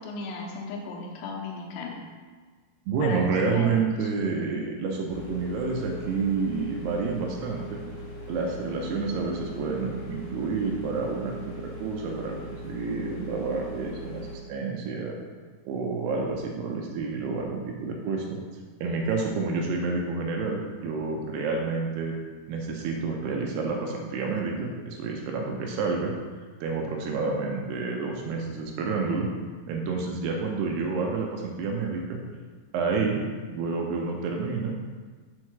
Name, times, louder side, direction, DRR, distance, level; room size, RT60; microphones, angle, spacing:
voice 1, 0.0-2.0 3.0-4.1, left 3 dB, 80° left, 1 dB, 2.9 m, -36 dB
voice 2, 2.9-7.8 8.3-15.2 15.7-18.4 18.8-22.1 22.5-26.1 26.6-29.3 29.7-32.2 32.7-33.2 33.5-34.7, right 4 dB, 75° right, 0 dB, 2.6 m, -29 dB
sound 1, 5.1-14.4, equal, 45° left, 2.5 m, -40 dB
6.4 x 5.4 x 5.9 m, 1.5 s
omnidirectional pair, 5.2 m